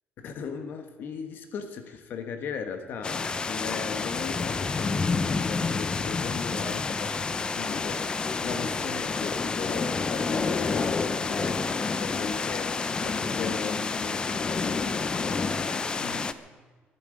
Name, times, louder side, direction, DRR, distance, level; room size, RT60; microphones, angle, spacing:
voice 1, 0.2-16.3, left 6 dB, 55° left, 7 dB, 1.4 m, -38 dB
sound 1, 3.0-16.3, left 4 dB, 20° left, 0.6 m, -29 dB
21.5 x 11.0 x 5.1 m, 1.4 s
cardioid pair, 155°, 4 cm